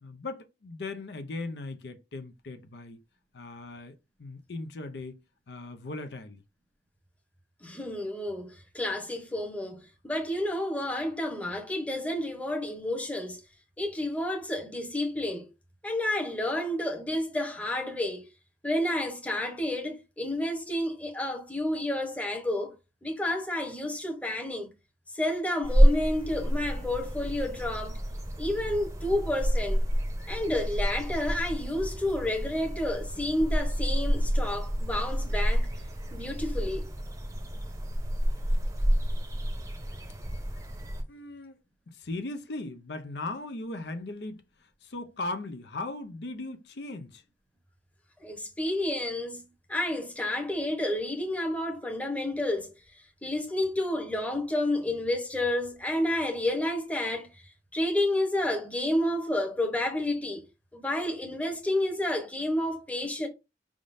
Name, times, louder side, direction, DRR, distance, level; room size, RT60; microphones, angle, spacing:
voice 1, 0.0-3.0 3.3-5.2 5.5-6.4 41.1-41.6 41.9-47.2, left 2 dB, 75° left, 0.6 m, -38 dB
voice 2, 7.6-13.4 13.8-15.5 15.8-18.3 18.6-22.7 23.0-24.7 25.1-28.0 28.4-29.8 30.3-35.7 36.1-36.9 48.2-49.4 49.7-52.7 53.2-57.3 57.7-60.4 60.7-63.3, left 1 dB, 10° left, 0.9 m, -30 dB
sound 1, 25.6-41.0, equal, 15° right, 0.7 m, -28 dB
5.0 x 3.6 x 2.6 m
head